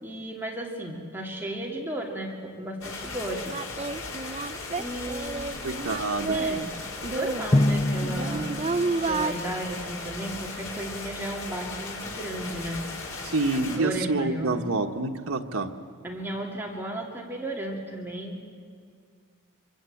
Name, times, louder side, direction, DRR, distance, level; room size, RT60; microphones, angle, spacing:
voice 1, 0.0-3.4 4.8-5.5 6.3-6.6 7.1-8.6 9.0-12.8 13.8-14.7 16.0-18.4, right 1 dB, 10° right, -1 dB, 2.2 m, -34 dB
sound 1, 2.8-13.8, left 3 dB, 80° left, 4.6 m, -37 dB
Singing, 2.9-3.0 3.5-6.7 7.0-9.3, right 3 dB, 30° right, 0.6 m, -30 dB
voice 2, 5.6-6.4 13.3-15.7, right 3 dB, 85° right, 4 dB, 1.4 m, -27 dB
Drum, 7.5-10.2, left 1 dB, 25° left, 0.6 m, -27 dB
25.0 x 23.5 x 8.5 m, 2.1 s
head